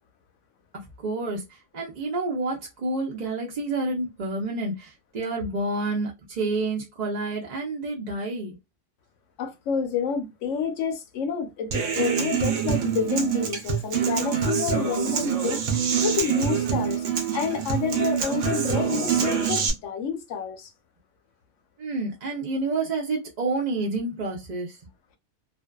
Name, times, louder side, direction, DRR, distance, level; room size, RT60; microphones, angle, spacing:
voice 1, 0.7-8.6 21.8-24.8, right 2 dB, 45° right, 0.6 m, -29 dB
voice 2, 9.4-15.6 16.0-17.0 17.3-20.7, left 6 dB, 85° left, 1.0 m, -29 dB
Human voice / Acoustic guitar, 11.7-19.7, right 8 dB, 85° right, 1.0 m, -25 dB
2.5 x 2.3 x 2.2 m
omnidirectional pair, 1.2 m